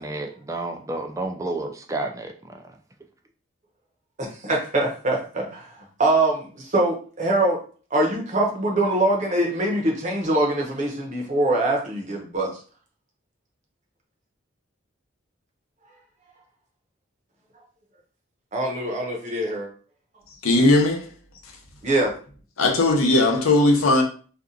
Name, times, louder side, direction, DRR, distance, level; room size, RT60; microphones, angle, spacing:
voice 1, 0.0-2.3, right 2 dB, 15° right, 0.3 m, -30 dB
voice 2, 4.2-7.6 7.9-12.6 18.5-19.7 21.8-22.2, right 2 dB, 35° right, 0.8 m, -23 dB
voice 3, 20.3-21.1 22.6-24.0, left 2 dB, 80° left, 0.8 m, -18 dB
2.8 x 2.4 x 3.6 m
head